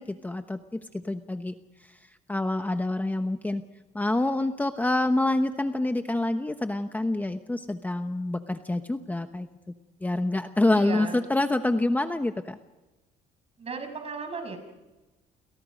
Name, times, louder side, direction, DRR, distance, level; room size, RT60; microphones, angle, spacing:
voice 1, 0.0-1.6 1.8-2.0 2.3-3.6 3.9-9.5 10.0-12.6, left 2 dB, 10° left, 8 dB, 1.0 m, -27 dB
voice 2, 10.7-11.2 13.6-14.6, right 4 dB, 35° right, 6 dB, 6.3 m, -35 dB
30.0 x 23.5 x 5.2 m, 1.1 s
cardioid pair, 110°, 17 cm